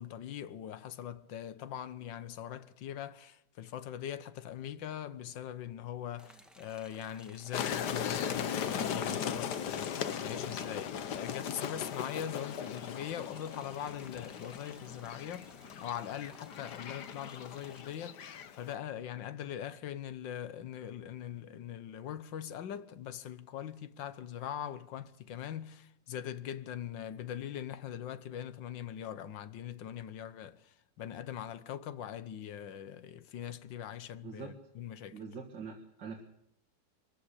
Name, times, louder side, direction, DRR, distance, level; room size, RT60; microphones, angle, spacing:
voice 1, 0.0-35.2, left 10 dB, 90° left, 1.7 m, -42 dB
sound 1, 6.2-17.8, equal, ahead, 1.6 m, -59 dB
sound 2, 7.5-18.7, left 8 dB, 65° left, 1.6 m, -38 dB
voice 2, 34.2-34.5 35.1-36.2, right 5 dB, 75° right, 2.7 m, -43 dB
23.5 x 15.0 x 8.3 m
omnidirectional pair, 1.9 m